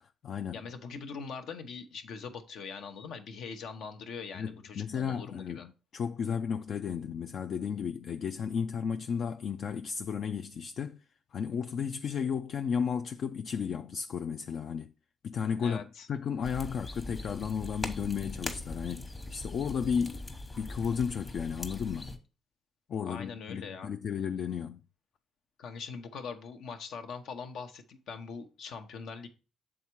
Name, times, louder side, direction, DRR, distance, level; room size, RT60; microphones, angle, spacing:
voice 1, 0.0-0.6 4.3-11.0 11.3-14.9 15.2-20.3 20.6-22.2 22.9-24.8, left 7 dB, 60° left, 0.3 m, -34 dB
voice 2, 0.5-5.7 15.6-16.1 23.1-23.9 25.6-29.3, left 5 dB, 75° left, 0.8 m, -42 dB
sound 1, 16.4-22.2, left 2 dB, 25° left, 1.0 m, -41 dB
7.2 x 3.6 x 4.5 m
cardioid pair, 90°, 0 cm